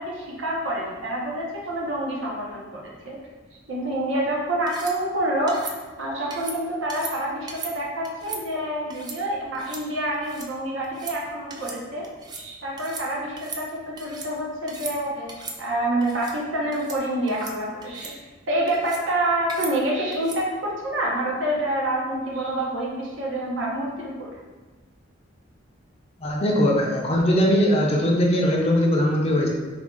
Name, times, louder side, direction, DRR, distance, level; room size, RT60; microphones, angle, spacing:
voice 1, 0.0-3.2 3.7-5.7 6.0-12.0 12.3-18.1 18.5-24.3, right 1 dB, 70° right, -3 dB, 0.8 m, -27 dB
sound 1, 4.7-5.0 5.5-5.8 6.3-6.6 6.9-7.1 7.5-7.7 8.0-8.4 8.9-9.2 9.5-9.8 10.1-10.5 10.8-11.2 11.5-11.8 12.0-12.4 12.8-13.1 13.4-14.3 14.7-15.0 15.3-15.6 16.0-16.3 16.7-17.0 17.3-17.5 17.8-18.1 18.7-19.0 19.5-19.7 20.1-20.4, right 3 dB, 20° right, 0.3 m, -37 dB
voice 2, 26.2-29.5, equal, 30° left, -1 dB, 0.5 m, -20 dB
3.5 x 2.3 x 3.6 m, 1.3 s
head